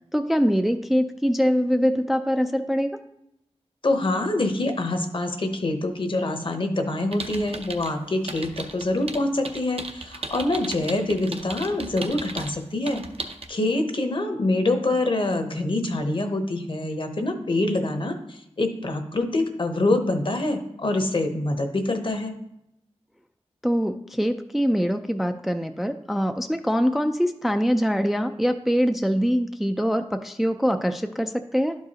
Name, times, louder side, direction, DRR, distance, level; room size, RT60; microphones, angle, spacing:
voice 1, 0.1-3.0 23.6-31.7, equal, ahead, 7 dB, 0.3 m, -23 dB
voice 2, 3.8-13.0 13.5-22.3, left 2 dB, 50° left, 6 dB, 0.8 m, -25 dB
sound 1, 7.1-7.9 8.3-12.5 12.9-13.4, right 3 dB, 60° right, 0.7 m, -35 dB
11.5 x 4.7 x 2.8 m, 0.82 s
wide cardioid pair, 90°, 11 cm